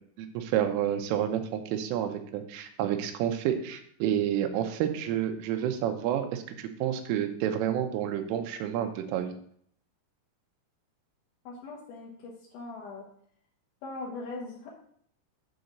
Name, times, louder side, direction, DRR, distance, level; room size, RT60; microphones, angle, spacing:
voice 1, 0.2-9.3, right 10 dB, 85° right, 7 dB, 3.4 m, -29 dB
voice 2, 11.4-13.1 13.8-14.7, left 3 dB, 65° left, -4 dB, 2.6 m, -40 dB
8.6 x 3.9 x 6.6 m, 0.63 s
omnidirectional pair, 5.6 m